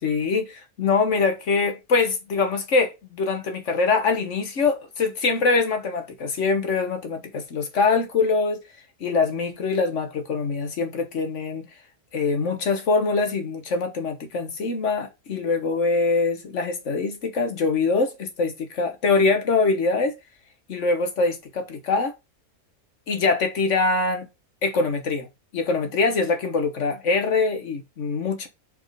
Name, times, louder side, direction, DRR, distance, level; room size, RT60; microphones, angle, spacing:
voice 1, 0.0-8.6 9.0-11.7 12.1-20.1 20.7-22.1 23.1-24.3 24.6-25.3 25.5-28.5, left 4 dB, 55° left, 1.4 m, -23 dB
4.4 x 4.4 x 4.9 m
omnidirectional pair, 1.6 m